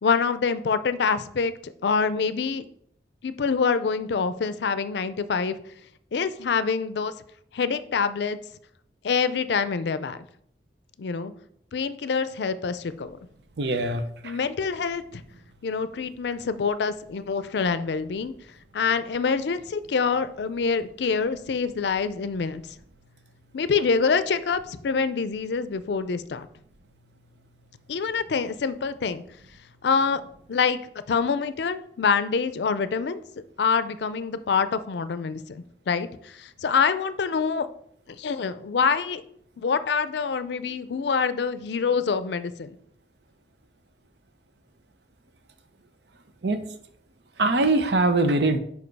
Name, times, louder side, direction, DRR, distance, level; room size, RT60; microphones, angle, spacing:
voice 1, 0.0-2.6 3.2-5.5 6.1-7.1 7.5-8.4 9.0-10.2 11.0-11.3 11.7-13.2 14.2-15.2 15.6-18.3 18.7-22.6 23.5-26.5 27.9-29.2 29.8-30.2 30.5-30.8 31.1-33.2 33.6-37.7 38.2-39.2 39.6-42.8, left 5 dB, 75° left, 13 dB, 0.4 m, -26 dB
voice 2, 13.6-14.3 46.4-46.6 47.4-48.6, right 2 dB, 70° right, 8 dB, 0.7 m, -22 dB
5.1 x 5.0 x 4.7 m, 0.68 s
head